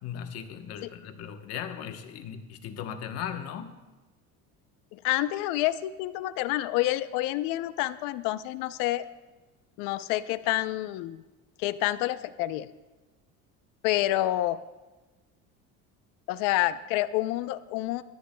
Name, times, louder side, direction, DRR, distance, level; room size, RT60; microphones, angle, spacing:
voice 1, 0.0-3.7, left 8 dB, 50° left, 6 dB, 1.1 m, -37 dB
voice 2, 4.9-9.0 9.8-11.2 11.6-12.7 13.8-14.6 16.3-18.0, left 15 dB, 85° left, 14 dB, 0.6 m, -28 dB
21.5 x 13.5 x 2.3 m, 1.2 s
cardioid pair, 170°, 32 cm